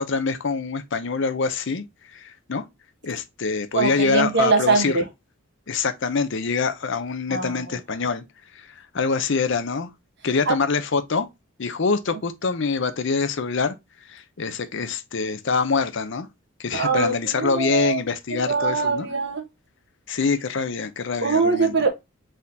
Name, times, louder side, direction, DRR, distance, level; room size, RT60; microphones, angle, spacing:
voice 1, 0.0-2.7 3.0-5.0 5.7-8.2 8.5-9.9 10.2-11.3 11.6-16.3 16.6-19.1 20.1-21.7, left 4 dB, 60° left, 0.6 m, -25 dB
voice 2, 3.7-5.0 7.3-7.6 10.5-10.6 16.7-18.0 18.4-19.5 21.2-21.9, right 4 dB, 50° right, 1.2 m, -22 dB
4.4 x 3.7 x 2.6 m
head